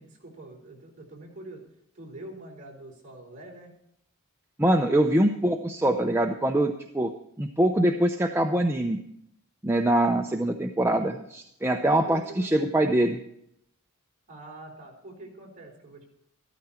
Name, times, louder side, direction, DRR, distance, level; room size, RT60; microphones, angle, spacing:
voice 1, 0.0-1.6 1.9-3.8 11.9-12.9 14.3-16.1, right 2 dB, 35° right, -2 dB, 4.7 m, -45 dB
voice 2, 4.6-7.1 7.4-9.0 9.6-13.2, right 1 dB, 10° right, 3 dB, 0.7 m, -24 dB
14.0 x 13.5 x 4.4 m, 0.74 s
head